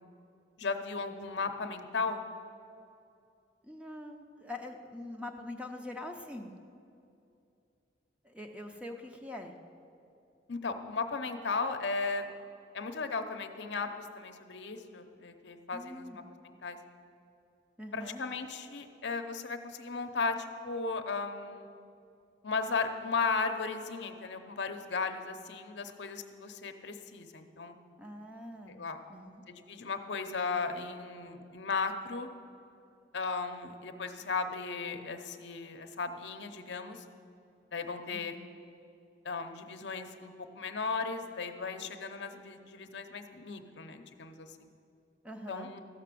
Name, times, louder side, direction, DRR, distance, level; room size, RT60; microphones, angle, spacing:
voice 1, 0.6-2.2 10.5-12.3 12.7-16.1 16.4-16.8 17.9-21.7 22.4-27.8 28.7-29.0 29.5-32.3 33.1-37.0 37.7-38.3 39.2-44.7 45.5-45.8, left 4 dB, 65° left, 6 dB, 0.7 m, -36 dB
voice 2, 3.6-6.5 8.2-9.6 15.7-16.2 17.8-18.2 28.0-28.8 29.1-29.4 38.1-38.5 45.2-45.7, left 1 dB, 5° right, 3 dB, 0.6 m, -44 dB
14.0 x 5.9 x 7.5 m, 2.6 s
head